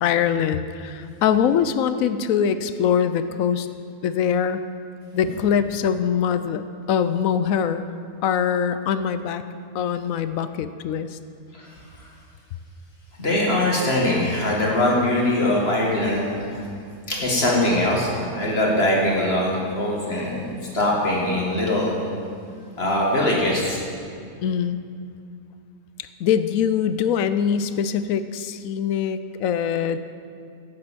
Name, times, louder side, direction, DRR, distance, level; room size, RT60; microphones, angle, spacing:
voice 1, 0.0-3.7 4.0-4.6 5.1-6.6 6.9-7.9 8.2-9.4 9.7-11.2 24.4-24.8 26.2-30.0, left 8 dB, 70° left, 12 dB, 0.9 m, -23 dB
voice 2, 13.2-16.6 17.1-22.0 22.8-23.8, left 1 dB, 40° left, -3 dB, 2.1 m, -22 dB
10.5 x 7.7 x 7.5 m, 2.3 s
omnidirectional pair, 1.7 m